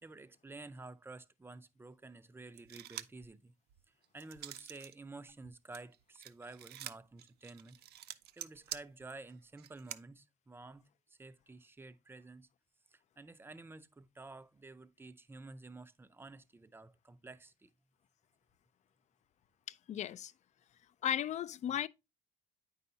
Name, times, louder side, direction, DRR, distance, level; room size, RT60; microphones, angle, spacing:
voice 1, 0.0-3.5 3.9-12.5 12.9-17.7, right 3 dB, 15° right, 0.5 m, -52 dB
sound 1, 2.6-3.3 3.7-4.9 5.3-10.0, right 12 dB, 70° right, 0.5 m, -47 dB
voice 2, 19.7-20.3 21.0-21.9, left 10 dB, 45° left, 0.4 m, -35 dB
8.7 x 5.5 x 2.8 m
cardioid pair, 110°, 17 cm